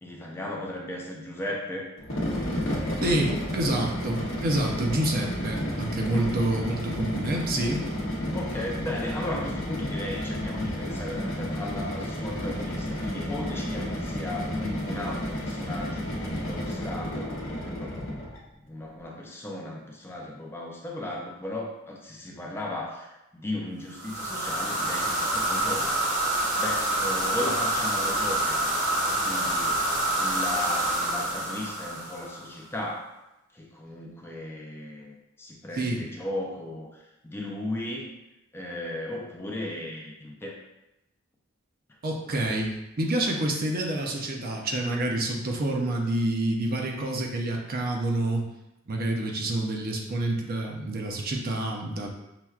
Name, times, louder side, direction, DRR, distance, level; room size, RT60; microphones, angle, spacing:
voice 1, 0.0-1.9 2.8-3.0 6.1-6.4 8.3-25.9 26.6-28.7 29.1-29.9 30.2-33.2 33.5-38.1 38.5-40.6, left 1 dB, 10° left, -1 dB, 0.4 m, -36 dB
sound 1, 2.0-18.4, equal, 80° left, 0.7 m, -31 dB
voice 2, 3.0-7.9 35.7-36.0 42.0-48.4 48.9-52.1, right 1 dB, 50° right, 0 dB, 0.6 m, -28 dB
sound 2, 23.9-32.5, right 1 dB, 65° right, 1.0 m, -27 dB
5.7 x 2.2 x 2.3 m, 0.92 s
head